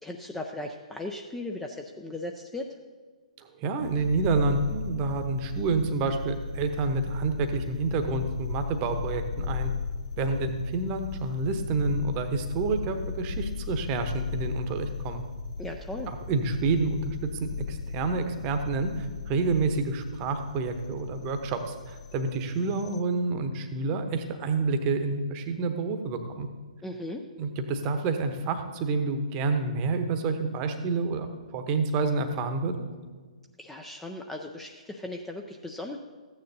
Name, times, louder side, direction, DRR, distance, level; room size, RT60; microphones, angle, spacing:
voice 1, 0.0-2.7 15.6-16.1 26.8-27.2 33.6-36.0, left 1 dB, 5° left, 2 dB, 0.4 m, -37 dB
voice 2, 3.4-9.7 10.2-15.2 16.1-26.5 27.4-32.9, right 3 dB, 25° right, 7 dB, 0.9 m, -28 dB
sound 1, 3.8-23.0, left 5 dB, 65° left, 0.6 m, -36 dB
14.0 x 9.3 x 2.7 m, 1.5 s
figure-of-eight pair, 125°, 4 cm